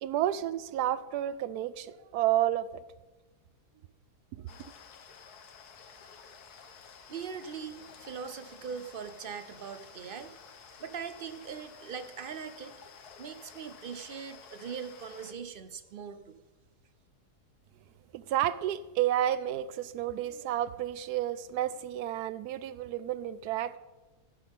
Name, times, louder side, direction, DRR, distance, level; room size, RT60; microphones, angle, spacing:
voice 1, 0.0-2.7 18.1-23.8, right 12 dB, 80° right, 1.1 m, -31 dB
sound 1, 4.5-15.3, left 6 dB, 75° left, 1.5 m, -52 dB
voice 2, 7.1-12.8 13.2-16.4, right 6 dB, 65° right, 0.5 m, -41 dB
15.0 x 10.0 x 3.6 m
omnidirectional pair, 1.7 m